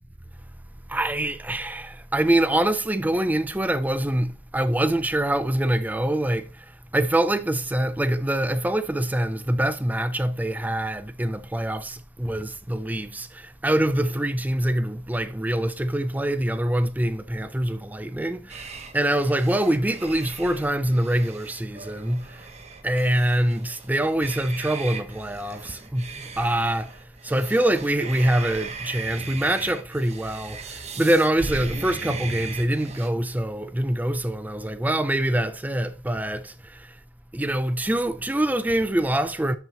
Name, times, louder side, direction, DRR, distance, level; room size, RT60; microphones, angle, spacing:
voice 1, 0.9-6.7 6.9-22.5 22.8-37.0 37.3-39.6, right 1 dB, 10° right, 0.4 m, -25 dB
sound 1, 18.5-33.1, right 4 dB, 35° right, 1.1 m, -38 dB
12.5 x 5.8 x 2.9 m
head